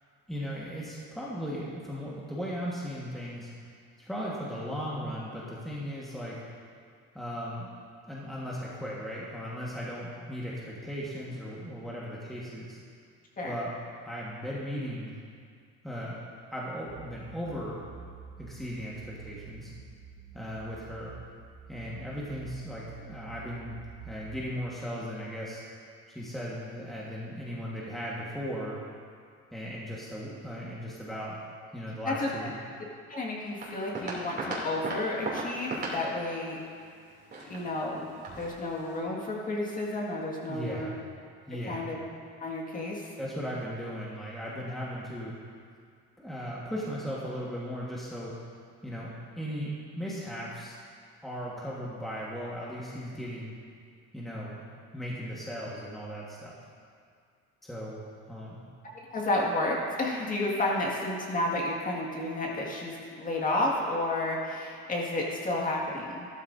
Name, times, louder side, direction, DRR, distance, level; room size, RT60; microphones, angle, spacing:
voice 1, 0.3-3.5 4.0-6.4 7.1-7.7 8.1-12.8 13.4-13.7 14.0-15.1 15.8-17.8 18.4-19.7 20.3-21.1 21.7-23.8 24.0-25.6 26.1-28.7 29.5-31.4 31.7-32.6 40.5-40.9 41.5-41.9 43.2-45.3 46.2-48.3 48.8-50.8 51.2-53.5 54.1-54.6 54.9-56.6 57.6-58.0 58.3-58.6, equal, ahead, -6 dB, 1.5 m, -37 dB
sound 1, 16.9-24.5, right 6 dB, 55° right, 1.7 m, -48 dB
voice 2, 33.1-36.6 37.5-40.9 41.7-42.0 42.4-43.0 59.1-66.3, left 2 dB, 25° left, -3 dB, 2.0 m, -31 dB
sound 2, 33.6-39.0, right 2 dB, 35° right, 2.9 m, -38 dB
13.5 x 12.5 x 2.7 m, 2.2 s
cardioid pair, 135°, 30 cm